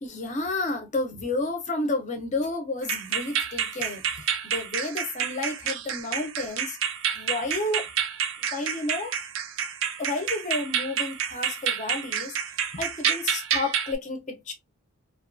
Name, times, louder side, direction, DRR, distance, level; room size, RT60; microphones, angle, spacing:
voice 1, 0.0-6.8 7.1-7.9 8.5-9.1 10.0-12.3 12.7-14.5, left 2 dB, 30° left, 0.5 m, -31 dB
sound 1, 2.8-14.0, right 8 dB, 60° right, 0.4 m, -29 dB
2.6 x 2.2 x 2.4 m
head